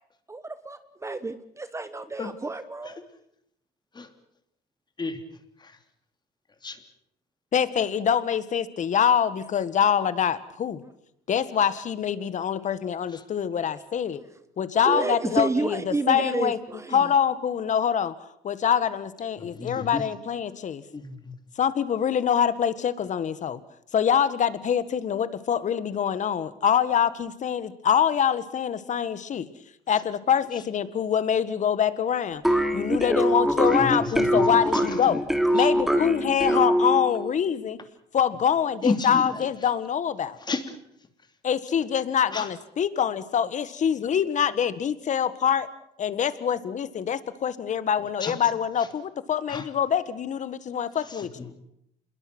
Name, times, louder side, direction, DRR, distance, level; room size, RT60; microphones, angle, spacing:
voice 1, 0.3-3.0 14.8-17.1, right 3 dB, 15° right, 12 dB, 1.2 m, -30 dB
voice 2, 7.5-10.8 11.3-14.2 14.6-16.6 16.9-18.1 18.4-20.8 21.6-23.6 23.9-29.5 29.9-35.2 35.5-37.8 38.1-40.4 41.4-45.7 46.0-51.3, left 8 dB, 45° left, 14 dB, 1.6 m, -25 dB
voice 3, 19.4-20.0 20.9-21.3 33.7-35.2 35.5-35.7 38.8-39.5 40.4-40.8 42.3-42.5 48.2-48.5 48.8-48.9 49.5-49.7 51.0-51.6, left 4 dB, 25° left, 8 dB, 3.0 m, -32 dB
sound 1, 32.4-37.2, equal, ahead, 2.9 m, -23 dB
27.0 x 21.5 x 6.2 m, 0.73 s
cardioid pair, 110°, 17 cm